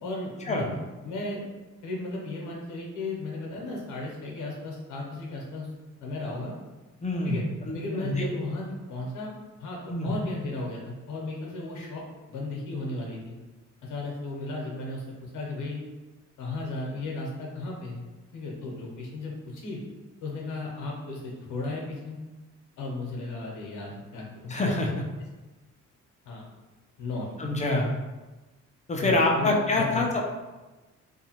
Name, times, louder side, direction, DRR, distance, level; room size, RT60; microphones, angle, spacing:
voice 1, 0.0-0.8 1.0-1.4 1.8-5.7 6.0-6.5 7.2-7.4 7.7-9.3 9.6-13.3 13.8-15.8 16.4-18.0 18.3-19.8 20.2-22.2 22.8-24.6 26.2-26.4 27.0-27.6 29.0-30.2, left 2 dB, 85° left, -2 dB, 0.9 m, -35 dB
voice 2, 7.0-7.4 7.6-8.3 9.9-10.1 24.5-25.0 27.4-27.9 28.9-30.2, left 2 dB, 25° left, 0 dB, 0.5 m, -25 dB
2.7 x 2.3 x 2.9 m, 1.2 s
cardioid pair, 90°, 30 cm